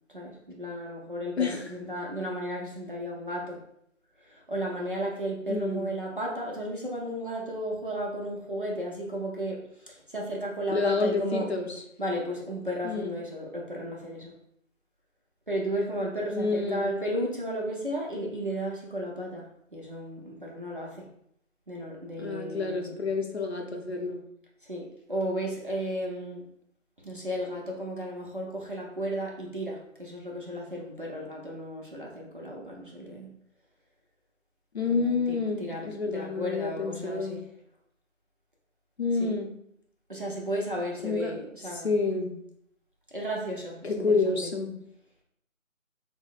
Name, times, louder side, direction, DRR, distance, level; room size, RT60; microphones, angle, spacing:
voice 1, 0.1-3.6 4.2-11.5 12.0-14.3 15.5-21.1 21.7-23.0 24.6-26.4 27.0-33.3 34.9-37.4 39.2-39.3 40.1-41.9 43.1-44.5, equal, 40° right, -3 dB, 0.6 m, -34 dB
voice 2, 1.4-1.7 5.5-5.9 10.7-11.8 12.8-13.1 16.3-16.9 22.2-24.2 34.7-37.4 39.0-39.5 41.0-41.3 41.7-42.3 43.8-44.7, left 4 dB, 50° left, 2 dB, 0.6 m, -29 dB
6.0 x 2.0 x 2.4 m, 0.72 s
figure-of-eight pair, 160°, 40 cm